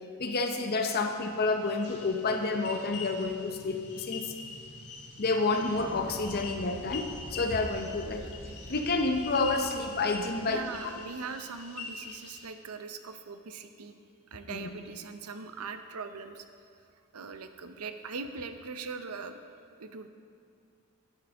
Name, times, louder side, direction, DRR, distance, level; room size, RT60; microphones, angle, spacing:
voice 1, 0.2-4.3 5.2-8.2 8.7-10.6 14.5-14.7, left 3 dB, 45° left, 5 dB, 0.7 m, -29 dB
sound 1, 0.9-11.0, equal, 10° right, 2.6 m, -48 dB
sound 2, 1.1-12.5, left 4 dB, 85° left, 1.2 m, -45 dB
voice 2, 10.4-14.0 14.3-16.5 17.1-19.4 19.8-20.1, right 4 dB, 80° right, 8 dB, 0.7 m, -41 dB
12.5 x 9.4 x 3.5 m, 2.3 s
head